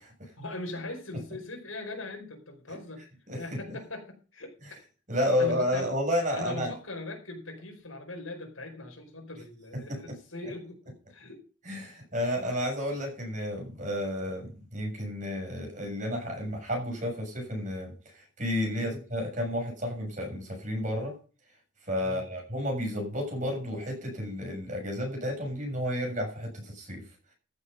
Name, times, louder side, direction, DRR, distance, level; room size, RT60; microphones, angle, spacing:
voice 1, 0.4-3.0 3.3-4.5 5.4-5.9 6.3-11.4 18.8-19.0 22.0-22.2, left 2 dB, 85° left, 4 dB, 4.8 m, -40 dB
voice 2, 3.3-3.6 5.1-6.7 9.7-10.2 11.6-21.1 21.9-27.0, left 1 dB, 35° right, 1 dB, 7.0 m, -31 dB
14.0 x 8.0 x 5.6 m, 0.35 s
head